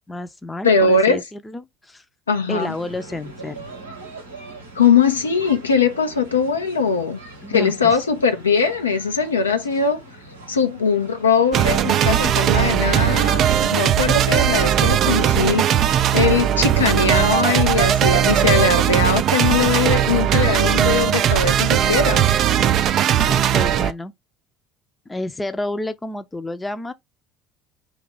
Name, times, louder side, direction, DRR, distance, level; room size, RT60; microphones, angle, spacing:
voice 1, 0.1-2.0 2.5-3.7 7.4-8.0 23.3-24.1 25.1-26.9, left 1 dB, 15° left, 0.6 m, -30 dB
voice 2, 0.6-1.2 2.3-2.7 4.8-7.2 7.5-10.0 10.5-22.3, left 5 dB, 85° left, 0.5 m, -20 dB
sound 1, 2.6-22.1, right 2 dB, 90° right, 0.8 m, -43 dB
sound 2, 11.5-23.9, right 10 dB, 50° right, 0.4 m, -18 dB
2.8 x 2.4 x 3.9 m
figure-of-eight pair, 60°, 0 cm